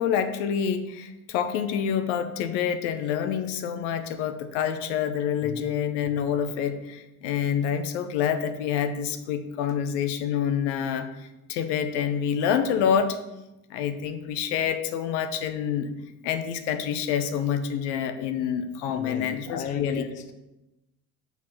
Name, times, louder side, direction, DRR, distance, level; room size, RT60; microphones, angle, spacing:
voice 1, 0.0-13.2 13.7-15.9 16.2-20.0, left 8 dB, 55° left, 8 dB, 0.8 m, -27 dB
voice 2, 18.9-20.3, left 6 dB, 20° left, 7 dB, 0.5 m, -36 dB
5.9 x 4.3 x 5.8 m, 0.97 s
figure-of-eight pair, 65°, 44 cm